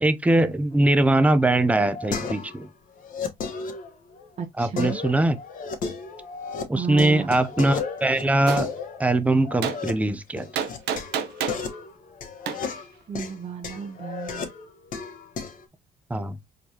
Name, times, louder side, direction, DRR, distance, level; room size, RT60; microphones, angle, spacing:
voice 1, 0.0-2.7 4.6-5.4 6.7-8.7 9.0-10.5 16.1-16.4, right 2 dB, 10° right, 0.5 m, -21 dB
sound 1, 1.4-2.7 3.0-4.3 4.8-6.6 6.9-9.9 10.4-15.6, left 5 dB, 55° left, 1.2 m, -34 dB
voice 2, 4.4-5.0 6.7-7.3 13.1-14.5, right 7 dB, 35° right, 0.8 m, -33 dB
Gunshot gunfire, 8.5-8.6 9.6-9.8 10.5-11.6 12.5-12.6, right 8 dB, 80° right, 0.8 m, -27 dB
4.5 x 3.2 x 2.8 m
cardioid pair, 110°, 17 cm